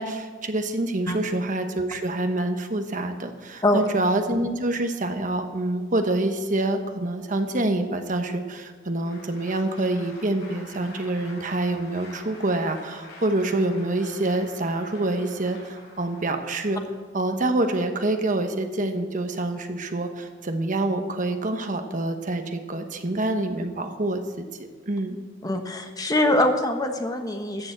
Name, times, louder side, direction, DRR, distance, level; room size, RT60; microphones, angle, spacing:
voice 1, 0.0-16.8 17.1-24.4 24.9-25.2, right 2 dB, 45° right, 6 dB, 1.1 m, -26 dB
Applause, 8.9-16.6, left 2 dB, 65° left, 4.8 m, -47 dB
voice 2, 25.4-27.7, left 1 dB, 20° left, 5 dB, 1.1 m, -23 dB
13.5 x 7.0 x 8.0 m, 1.5 s
head